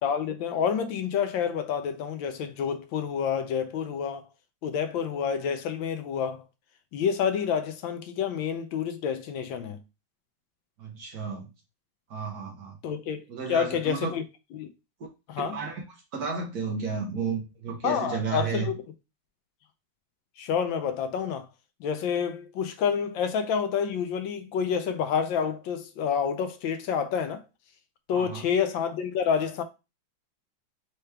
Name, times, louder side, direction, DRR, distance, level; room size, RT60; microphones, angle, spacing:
voice 1, 0.0-4.2 4.6-6.4 6.9-9.8 12.8-14.2 14.5-14.7 15.3-15.6 17.8-18.8 20.4-21.5 21.8-27.4 28.1-29.6, left 7 dB, 75° left, 1.3 m, -28 dB
voice 2, 10.8-11.5 12.1-12.8 13.3-14.1 15.4-15.8 16.1-18.7 28.1-28.4, right 5 dB, 55° right, 1.3 m, -32 dB
4.7 x 3.0 x 3.2 m
omnidirectional pair, 2.2 m